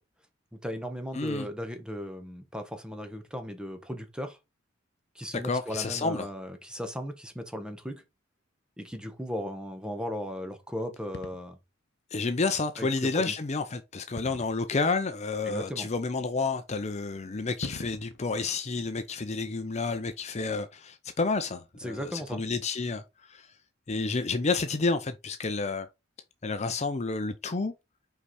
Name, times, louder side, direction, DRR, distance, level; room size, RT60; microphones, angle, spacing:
voice 1, 0.6-4.4 5.1-8.0 8.8-11.6 12.8-13.3 15.5-15.9 21.8-22.4, equal, 5° right, 1.1 m, -36 dB
voice 2, 1.1-1.5 5.4-6.3 12.1-23.0 23.3-23.5 23.9-25.9 26.4-27.7, left 3 dB, 35° left, 0.6 m, -30 dB
sound 1, 11.1-11.5 14.2-14.7 15.6-15.7 17.1-17.2 17.5-18.2, left 2 dB, 55° left, 1.0 m, -40 dB
5.7 x 4.7 x 4.2 m
head